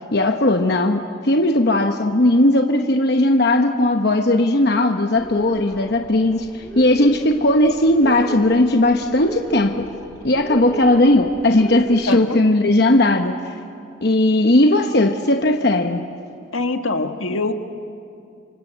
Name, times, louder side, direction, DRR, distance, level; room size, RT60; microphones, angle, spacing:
voice 1, 0.1-9.9 10.2-13.5 14.0-16.1, left 1 dB, 50° left, 5 dB, 1.0 m, -17 dB
sound 1, 5.1-12.0, right 1 dB, 10° left, 3.6 m, -34 dB
voice 2, 12.1-12.4 16.5-17.5, left 3 dB, 80° left, 6 dB, 1.6 m, -23 dB
26.5 x 26.0 x 8.0 m, 2.4 s
head